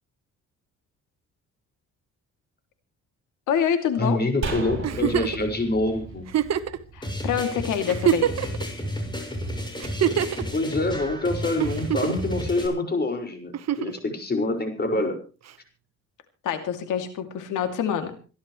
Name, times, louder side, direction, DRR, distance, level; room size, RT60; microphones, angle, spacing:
voice 1, 3.5-4.2 6.9-8.3 16.4-18.1, left 8 dB, 85° left, 7 dB, 2.7 m, -26 dB
voice 2, 4.0-6.3 10.4-15.2, left 2 dB, 35° left, 3 dB, 5.6 m, -26 dB
sound 1, 4.4-7.8 8.1-8.2, right 4 dB, 45° right, 7.0 m, -34 dB
Giggle, 4.8-5.4 6.3-6.8 7.4-7.5 7.9-8.6 9.8-10.4 11.6-12.3 13.5-14.0 15.5-15.6, right 10 dB, 60° right, 1.3 m, -24 dB
sound 2, 7.0-12.7, equal, 15° left, 5.5 m, -32 dB
27.0 x 11.5 x 3.2 m, 0.35 s
cardioid pair, 90°, 30 cm